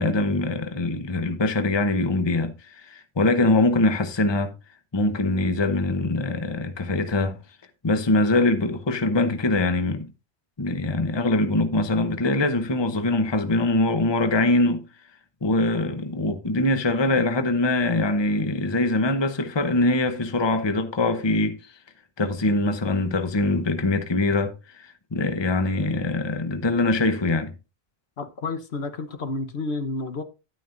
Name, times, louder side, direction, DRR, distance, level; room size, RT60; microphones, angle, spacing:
voice 1, 0.0-4.5 4.9-7.4 7.8-10.1 10.6-14.9 15.4-21.6 22.2-27.5, left 2 dB, 25° left, 0.9 m, -23 dB
voice 2, 28.2-30.2, left 3 dB, 65° left, 1.4 m, -30 dB
11.5 x 9.2 x 2.6 m
omnidirectional pair, 1.2 m